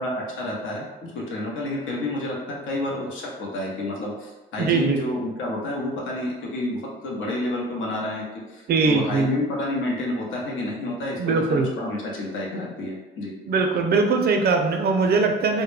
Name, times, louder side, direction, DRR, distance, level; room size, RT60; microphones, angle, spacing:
voice 1, 0.0-13.4, left 1 dB, 75° left, -2 dB, 0.7 m, -29 dB
voice 2, 4.6-5.0 8.7-9.3 11.2-11.7 13.5-15.6, right 4 dB, 55° right, 4 dB, 0.4 m, -21 dB
2.1 x 2.1 x 3.1 m, 1.1 s
cardioid pair, 90°, 20 cm